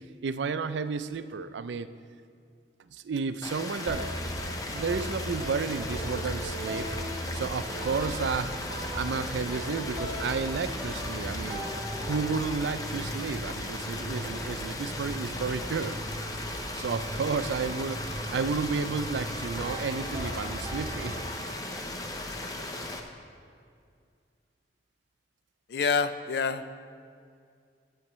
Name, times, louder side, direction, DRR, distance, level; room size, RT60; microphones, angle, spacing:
voice 1, 0.2-1.9 2.9-4.3 4.7-6.9 7.3-11.6 12.1-16.0 16.8-18.0 18.3-21.2, right 5 dB, 80° right, 12 dB, 0.4 m, -32 dB
sound 1, 3.4-23.0, left 2 dB, 20° left, 0.6 m, -37 dB
sound 2, 3.9-21.7, right 1 dB, 25° right, 1.4 m, -38 dB
sound 3, 15.2-21.5, right 7 dB, 5° right, 1.4 m, -48 dB
voice 2, 25.7-26.8, left 5 dB, 65° left, 11 dB, 0.4 m, -27 dB
14.0 x 8.3 x 3.1 m, 2.2 s
head